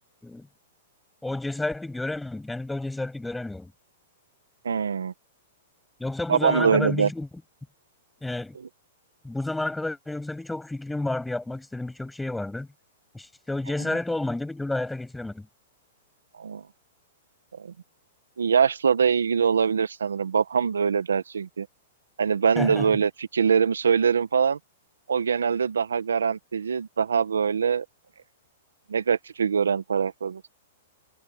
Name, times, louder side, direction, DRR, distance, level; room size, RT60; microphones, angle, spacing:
voice 1, 1.2-3.7 6.0-7.3 8.2-8.6 9.2-12.7 13.1-15.5 22.6-22.9, left 2 dB, 5° left, 7.9 m, -30 dB
voice 2, 4.6-5.1 6.3-7.1 16.4-16.6 17.6-17.7 18.4-21.7 22.2-24.6 25.1-27.8 28.9-30.4, right 6 dB, 90° right, 1.4 m, -23 dB
hypercardioid pair, 120°, 0 cm